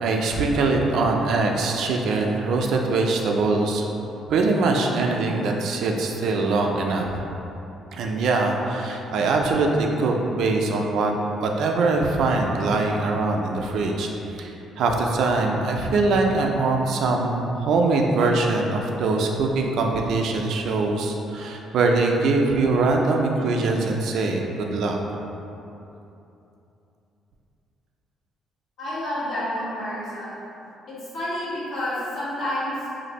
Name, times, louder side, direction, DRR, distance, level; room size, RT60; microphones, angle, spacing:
voice 1, 0.0-3.9 4.3-7.1 7.9-11.1 11.4-25.0, right 3 dB, 70° right, 1 dB, 0.3 m, -22 dB
voice 2, 28.8-30.3 30.9-32.9, left 1 dB, 60° left, -10 dB, 1.4 m, -29 dB
2.6 x 2.5 x 4.0 m, 2.9 s
cardioid pair, 90°, 0 cm